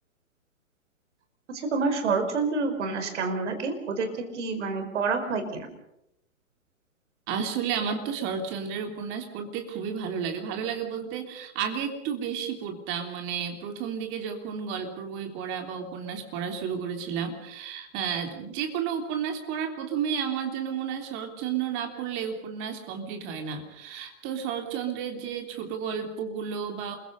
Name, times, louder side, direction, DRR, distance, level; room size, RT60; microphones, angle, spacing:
voice 1, 1.5-4.1 4.3-5.7, right 4 dB, 55° right, 7 dB, 4.9 m, -28 dB
voice 2, 7.3-27.0, right 7 dB, 30° right, 5 dB, 3.4 m, -32 dB
28.5 x 22.5 x 5.4 m, 0.82 s
hypercardioid pair, 130°, 42 cm